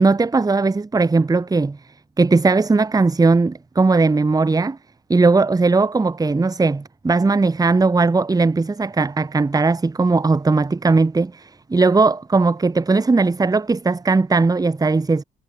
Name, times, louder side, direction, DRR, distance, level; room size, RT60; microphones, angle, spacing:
voice 1, 0.0-1.8 2.2-4.8 5.1-15.2, right 3 dB, 20° right, 1.1 m, -18 dB
cardioid pair, 90°, 20 cm